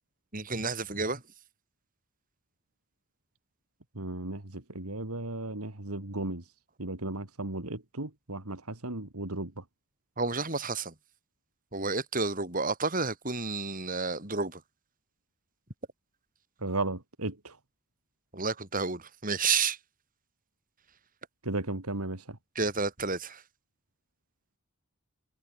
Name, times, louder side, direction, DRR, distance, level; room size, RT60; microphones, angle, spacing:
voice 1, 0.3-1.2 10.2-10.9 11.7-14.6 18.3-19.8 22.6-23.4, right 4 dB, 40° right, 7.1 m, -30 dB
voice 2, 3.9-6.5 6.8-9.6 16.6-17.6 21.4-22.4, right 2 dB, 85° right, 3.0 m, -35 dB
head